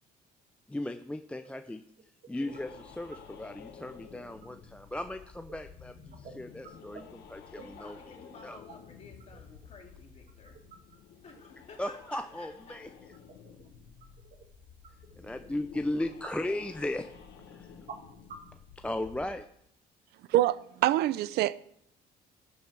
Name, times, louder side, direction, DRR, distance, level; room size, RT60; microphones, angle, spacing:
voice 1, 0.7-8.0 8.4-8.6 11.8-12.9 15.2-17.1 17.5-17.7 18.8-19.5, left 1 dB, 5° left, 0.5 m, -36 dB
sound 1, 1.4-19.2, right 5 dB, 55° right, 1.8 m, -55 dB
sound 2, 2.5-19.3, left 7 dB, 80° left, 1.5 m, -52 dB
voice 2, 7.5-10.6 11.2-12.8, left 4 dB, 40° left, 3.3 m, -52 dB
voice 3, 20.3-21.6, right 14 dB, 75° right, 0.5 m, -25 dB
13.5 x 7.2 x 4.7 m
cardioid pair, 110°, 17 cm